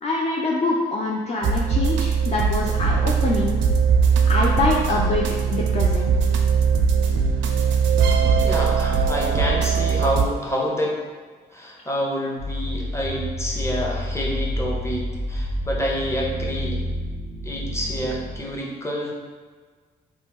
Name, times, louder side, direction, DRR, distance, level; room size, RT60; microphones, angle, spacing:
voice 1, 0.0-3.6 4.3-5.2 5.5-6.2, left 2 dB, 35° left, -2 dB, 0.4 m, -24 dB
sound 1, 1.4-10.3, right 6 dB, 65° right, 0.4 m, -20 dB
voice 2, 8.4-11.0 11.5-16.8 17.4-19.1, equal, 15° left, -2 dB, 0.8 m, -28 dB
sound 2, 12.4-18.4, equal, 85° left, 0.7 m, -29 dB
2.8 x 2.1 x 3.5 m, 1.5 s
hypercardioid pair, 40°, 21 cm